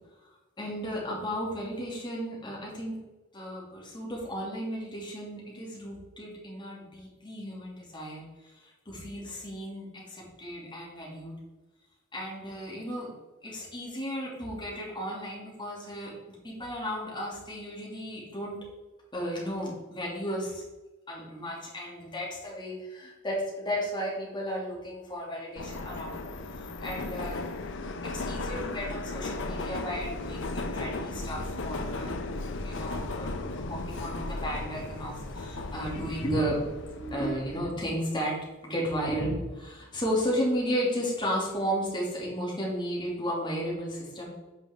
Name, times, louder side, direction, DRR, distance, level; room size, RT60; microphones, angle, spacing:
voice 1, 0.6-3.0 3.3-11.3 12.1-13.1 13.4-16.2 16.4-18.6 19.1-20.6 21.1-26.2 26.6-27.5 28.0-32.1 32.6-38.4 38.6-44.3, equal, 20° left, -4 dB, 2.3 m, -34 dB
Subway metro underground, 25.6-37.6, left 2 dB, 65° left, 0.7 m, -36 dB
8.4 x 5.3 x 3.7 m, 1.1 s
head